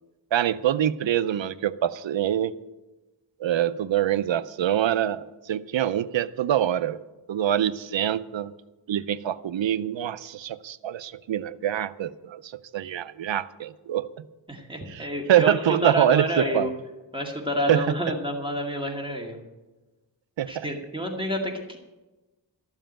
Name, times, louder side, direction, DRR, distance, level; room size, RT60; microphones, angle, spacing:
voice 1, 0.3-2.6 3.4-7.0 7.3-8.5 8.9-14.2 14.9-16.7 17.7-18.0 20.4-20.7, right 10 dB, 90° right, 15 dB, 0.6 m, -25 dB
voice 2, 14.5-16.7 17.1-19.4 20.5-21.8, equal, 10° right, 0 dB, 2.2 m, -29 dB
13.5 x 7.3 x 8.9 m, 1.1 s
wide cardioid pair, 85°, 44 cm